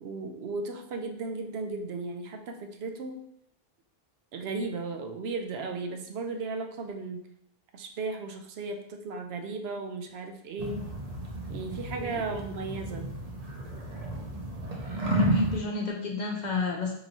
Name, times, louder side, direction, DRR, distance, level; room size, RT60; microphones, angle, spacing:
voice 1, 0.0-3.2 4.3-7.3 7.7-10.8 11.5-13.1, right 3 dB, 80° right, 5 dB, 0.8 m, -35 dB
sound 1, 10.6-15.6, right 1 dB, 45° right, 0.6 m, -31 dB
voice 2, 15.0-16.9, left 4 dB, 55° left, 1 dB, 0.7 m, -32 dB
4.6 x 2.9 x 2.6 m, 0.71 s
omnidirectional pair, 1.0 m